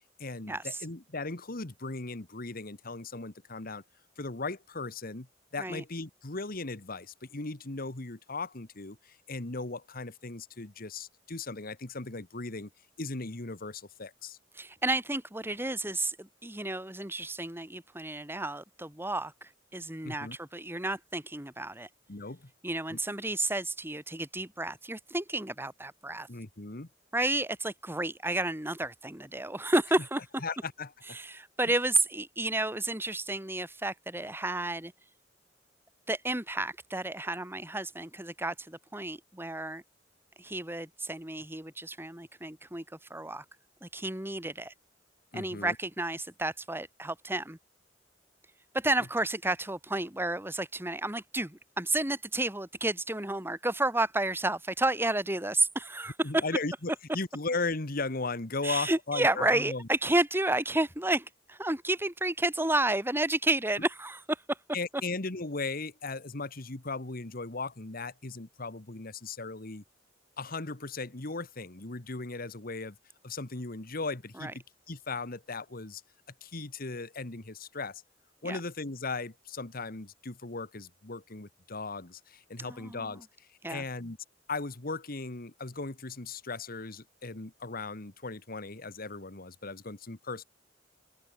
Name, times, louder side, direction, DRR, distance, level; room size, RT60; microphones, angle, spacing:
voice 1, 0.2-3.8 4.2-5.3 5.5-12.7 13.0-14.4 20.0-20.4 22.1-22.5 22.9-23.0 26.3-26.9 30.4-31.2 45.3-45.8 56.2-59.9 64.7-69.8 70.4-73.0 73.2-76.0 76.4-78.0 78.4-84.2 84.5-90.4, left 3 dB, 50° left, 1.7 m, -37 dB
voice 2, 14.6-21.9 22.6-26.3 27.1-30.2 31.1-34.9 36.1-39.8 40.4-42.8 43.1-43.4 43.8-44.7 45.3-47.6 48.7-56.4 58.6-64.6 74.4-74.5 78.4-78.6 82.6-83.2 83.6-83.8, right 2 dB, 10° right, 3.0 m, -31 dB
open air
head